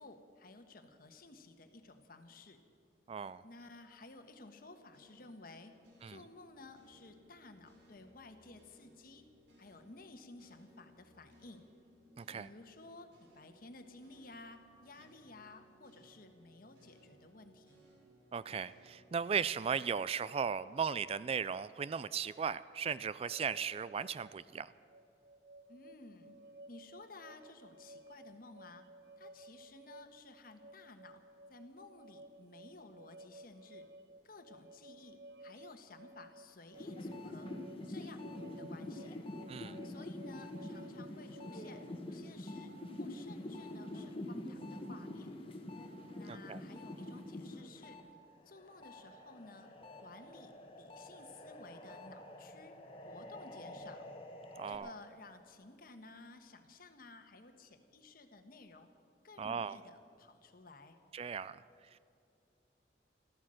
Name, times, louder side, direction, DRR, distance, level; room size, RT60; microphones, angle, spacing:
voice 1, 0.0-2.6 3.4-5.7 6.0-9.2 9.6-11.7 12.3-17.9 25.7-26.3 26.7-28.8 29.2-31.2 31.5-33.9 34.2-37.5 37.9-38.2 38.6-39.2 39.8-42.7 43.0-45.3 46.1-48.0 48.4-49.7 50.0-52.7 53.0-54.1 54.7-58.9 59.2-61.0, left 3 dB, 55° left, 7 dB, 1.3 m, -55 dB
voice 2, 3.1-3.4 6.0-6.2 12.2-12.5 18.3-24.7 39.5-39.8 46.3-46.6 54.6-54.9 59.4-59.8 61.1-61.6 61.9-62.0, right 6 dB, 35° right, 16 dB, 0.3 m, -37 dB
sound 1, 4.9-21.2, right 1 dB, 85° right, 3.0 m, -65 dB
sound 2, 23.3-42.0, right 1 dB, 65° right, 0.7 m, -57 dB
sound 3, 36.7-48.0 48.4-54.8, left 1 dB, 30° left, 1.4 m, -46 dB
14.5 x 13.0 x 7.7 m, 2.7 s
head